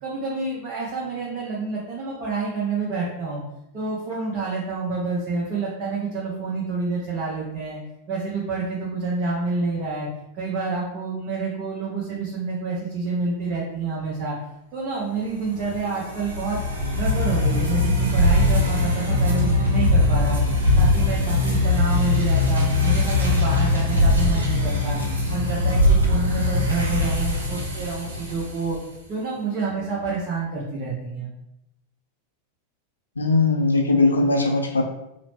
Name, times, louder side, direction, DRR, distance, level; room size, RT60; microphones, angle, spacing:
voice 1, 0.0-3.4 3.7-7.8 8.1-10.1 10.3-14.4 14.7-16.6 16.9-20.4 20.8-25.0 25.3-28.8 29.1-31.3, right 3 dB, 40° right, -5 dB, 0.7 m, -28 dB
sound 1, 15.4-28.8, left 2 dB, 75° right, 0.6 m, -21 dB
voice 2, 33.2-34.8, left 3 dB, 75° left, 3 dB, 0.4 m, -19 dB
2.9 x 2.0 x 3.0 m, 0.86 s
figure-of-eight pair, 90°, 0 cm